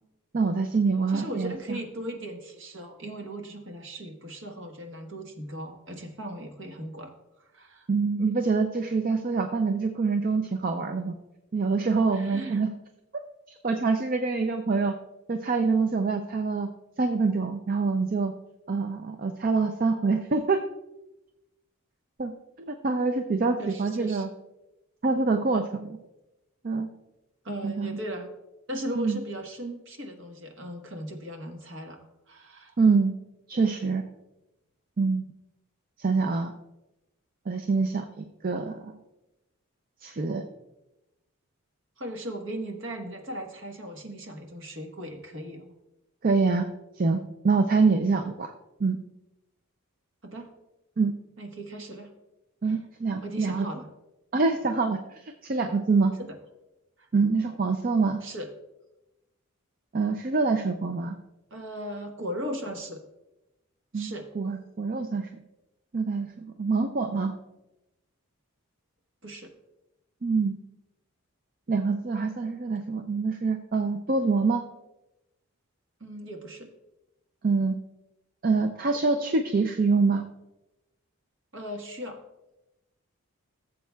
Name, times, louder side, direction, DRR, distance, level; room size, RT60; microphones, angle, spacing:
voice 1, 0.3-1.8 7.9-11.1 11.5-12.7 13.1-13.2 13.6-14.9 15.3-16.7 17.0-18.3 18.7-20.6 22.2-22.3 22.6-24.3 25.0-26.0 26.6-26.9 27.6-28.0 28.9-29.2 32.8-33.1 33.5-34.0 35.0-35.3 36.0-36.5 37.5-39.0 40.0-40.4 46.2-46.7 47.0-48.5 48.8-49.0 51.0-51.1 52.6-53.7 54.3-56.1 57.1-58.2 59.9-61.2 63.9-65.3 65.9-67.3 70.2-70.6 71.7-74.6 77.4-77.8 78.4-80.2, right 4 dB, 40° right, 6 dB, 0.4 m, -25 dB
voice 2, 1.1-7.9 12.1-12.6 23.2-24.3 27.4-28.3 28.7-32.8 42.0-45.7 50.2-50.5 51.4-52.1 52.6-52.8 53.2-53.9 56.2-56.3 57.0-57.1 58.2-58.5 61.5-63.0 63.9-64.3 69.2-69.5 76.0-76.7 81.5-82.2, right 1 dB, 55° right, 3 dB, 1.2 m, -38 dB
15.5 x 7.5 x 2.3 m, 0.96 s
head